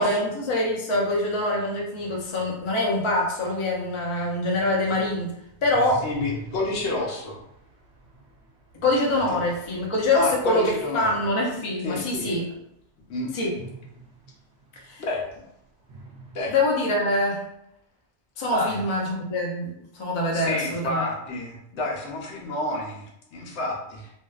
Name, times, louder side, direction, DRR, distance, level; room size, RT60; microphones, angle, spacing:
voice 1, 0.0-5.3 5.6-6.1 8.8-12.5 13.3-13.5 14.7-15.0 16.5-17.5 18.4-21.0, left 1 dB, 50° left, -2 dB, 0.3 m, -24 dB
sound 1, 2.0-12.2 13.5-15.4 15.8-17.5, right 1 dB, 70° right, 0.8 m, -46 dB
voice 2, 6.0-7.4 10.1-11.1 11.8-12.4 13.1-13.3 15.0-15.2 16.3-16.5 18.5-18.8 20.3-24.1, left 2 dB, 70° left, -2 dB, 0.9 m, -29 dB
2.6 x 2.2 x 2.3 m, 0.79 s
omnidirectional pair, 1.2 m